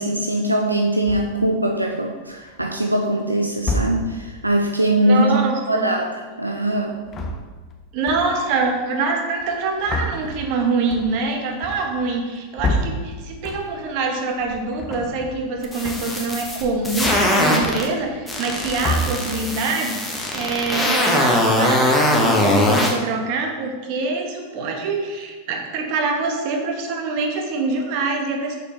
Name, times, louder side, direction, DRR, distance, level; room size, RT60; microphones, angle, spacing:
voice 1, 0.0-5.3 5.7-7.0, right 1 dB, 85° right, 2 dB, 0.4 m, -21 dB
sound 1, 1.1-1.5 2.3-2.8 3.6-4.3 6.9-7.8 8.1-8.6 9.4-14.0 14.3-15.5 15.8-16.3 16.6-18.2 18.5-19.6, left 1 dB, 25° left, 0.6 m, -29 dB
voice 2, 5.0-5.9 7.9-28.6, right 4 dB, 45° right, 2 dB, 1.1 m, -25 dB
sound 2, 15.6-17.9 18.3-22.9, left 1 dB, 10° left, 1.1 m, -20 dB
6.4 x 5.2 x 3.1 m, 1.4 s
figure-of-eight pair, 90°, 0 cm